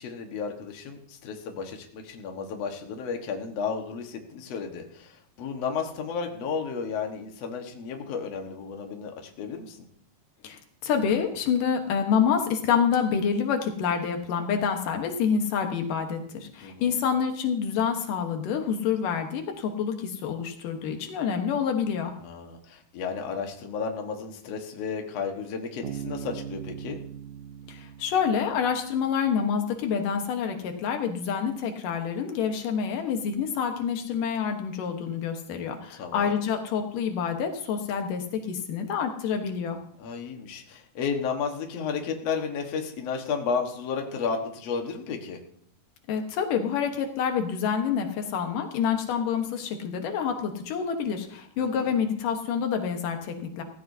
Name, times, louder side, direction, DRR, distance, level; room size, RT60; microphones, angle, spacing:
voice 1, 0.0-9.9 16.6-17.0 22.2-27.0 36.0-36.4 40.0-45.4 51.6-52.0, left 5 dB, 55° left, 3 dB, 2.5 m, -33 dB
voice 2, 10.4-22.1 27.7-39.8 46.1-53.6, left 7 dB, 90° left, 5 dB, 3.0 m, -27 dB
Bass guitar, 25.8-29.3, right 8 dB, 75° right, 2.1 m, -40 dB
16.5 x 15.5 x 2.8 m, 0.64 s
omnidirectional pair, 3.7 m